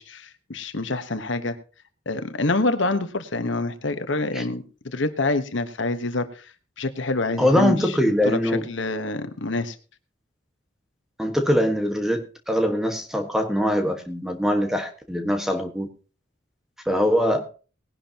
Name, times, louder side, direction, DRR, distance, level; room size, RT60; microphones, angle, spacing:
voice 1, 0.0-1.6 2.1-8.0 8.2-8.4 8.7-9.8, left 2 dB, 75° left, 9 dB, 1.2 m, -27 dB
voice 2, 7.4-8.7 11.2-15.9 16.8-17.5, equal, ahead, 5 dB, 1.4 m, -22 dB
19.0 x 11.0 x 2.9 m, 0.36 s
head